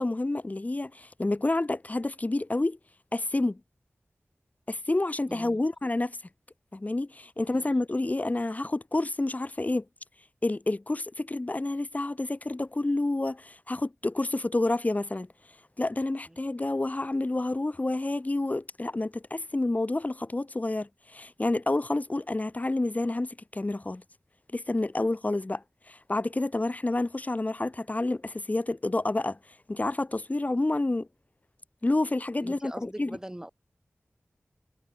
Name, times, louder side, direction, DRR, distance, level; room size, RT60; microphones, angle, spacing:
voice 1, 0.0-2.8 3.1-3.6 4.7-6.2 6.7-9.8 10.4-15.3 15.8-24.0 24.5-29.4 29.7-31.1 31.8-33.2, left 2 dB, 35° left, 1.8 m, -29 dB
voice 2, 5.3-5.6 7.5-7.8 16.3-16.4 32.3-33.5, right 1 dB, 15° right, 4.8 m, -42 dB
wide cardioid pair, 65°, 5 cm